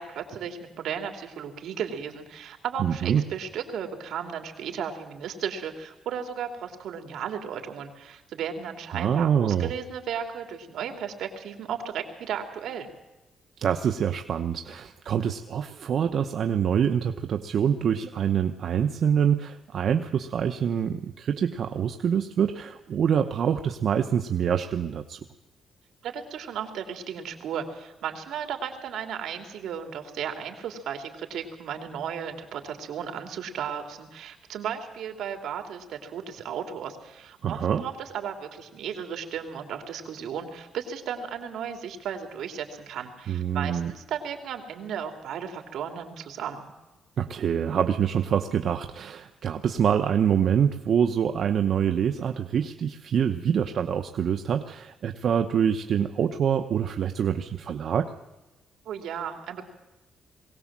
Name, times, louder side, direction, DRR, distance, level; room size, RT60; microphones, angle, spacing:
voice 1, 0.0-12.9 26.0-46.6 58.9-59.7, right 8 dB, 75° right, 5 dB, 2.9 m, -35 dB
voice 2, 2.8-3.2 8.9-9.7 13.6-25.2 37.4-37.8 43.3-43.9 47.2-58.1, right 8 dB, 55° right, 7 dB, 0.9 m, -25 dB
21.5 x 18.0 x 7.5 m, 1.1 s
cardioid pair, 130°, 0 cm